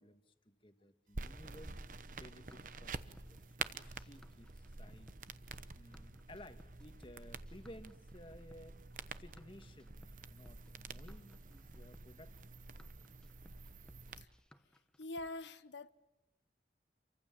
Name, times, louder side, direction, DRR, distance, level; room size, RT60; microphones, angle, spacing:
voice 1, 0.0-5.1 5.5-8.8 9.0-12.5, left 1 dB, 30° left, 1.6 m, -57 dB
sound 1, 1.1-14.2, right 4 dB, 45° right, 0.9 m, -48 dB
sound 2, 1.7-15.3, equal, 5° left, 1.1 m, -62 dB
voice 2, 15.0-15.9, left 2 dB, 90° left, 1.2 m, -44 dB
30.0 x 24.5 x 7.3 m
head